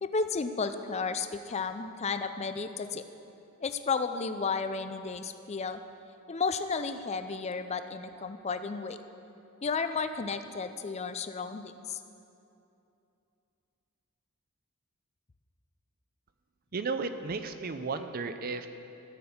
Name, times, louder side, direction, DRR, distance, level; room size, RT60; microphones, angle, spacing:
voice 1, 0.0-3.0 3.6-5.8 6.3-9.0 9.6-12.0, left 4 dB, 30° left, 9 dB, 0.4 m, -33 dB
voice 2, 16.7-18.7, right 4 dB, 45° right, 9 dB, 0.5 m, -34 dB
13.0 x 6.0 x 7.1 m, 2.8 s
head